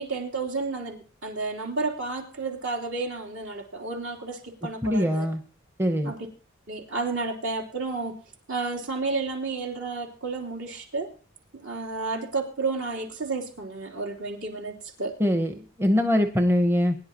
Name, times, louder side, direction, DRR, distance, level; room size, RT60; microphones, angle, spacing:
voice 1, 0.0-5.3 6.0-6.2 6.7-8.1 8.5-11.1 11.5-15.1, right 3 dB, 65° right, 1 dB, 3.3 m, -31 dB
voice 2, 4.8-5.4 5.8-6.1 15.2-15.5 15.8-17.0, left 1 dB, 10° right, 6 dB, 0.9 m, -22 dB
22.0 x 10.5 x 2.9 m, 0.38 s
head